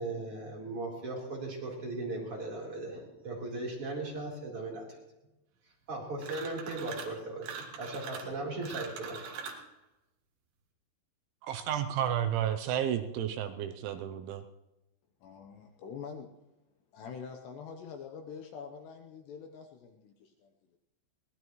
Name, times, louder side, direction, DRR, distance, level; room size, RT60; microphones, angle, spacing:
voice 1, 0.0-4.8 5.9-9.4, right 2 dB, 30° right, 4.1 m, -38 dB
sound 1, 6.2-7.2 7.4-9.7, right 6 dB, 65° right, 3.5 m, -42 dB
voice 2, 11.4-14.4, right 10 dB, 80° right, 3.0 m, -32 dB
voice 3, 15.2-16.3 16.9-20.5, left 6 dB, 75° left, 2.7 m, -45 dB
23.0 x 18.5 x 3.1 m
omnidirectional pair, 5.6 m